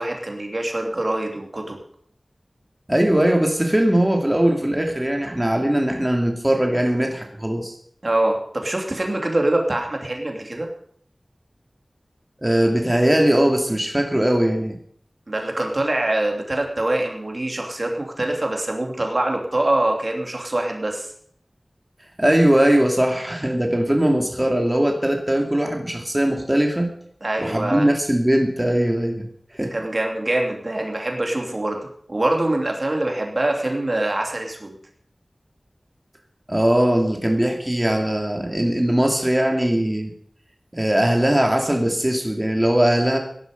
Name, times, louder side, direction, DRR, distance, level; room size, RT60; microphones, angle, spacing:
voice 1, 0.0-1.8 8.0-10.7 15.3-21.1 27.2-27.9 29.7-34.8, right 1 dB, 50° right, 2 dB, 3.0 m, -24 dB
voice 2, 2.9-7.8 12.4-14.8 22.2-26.9 27.4-29.7 36.5-40.1 40.7-43.2, right 1 dB, 20° right, 2 dB, 2.6 m, -20 dB
17.5 x 11.5 x 5.4 m, 0.64 s
wide cardioid pair, 50°, 0 cm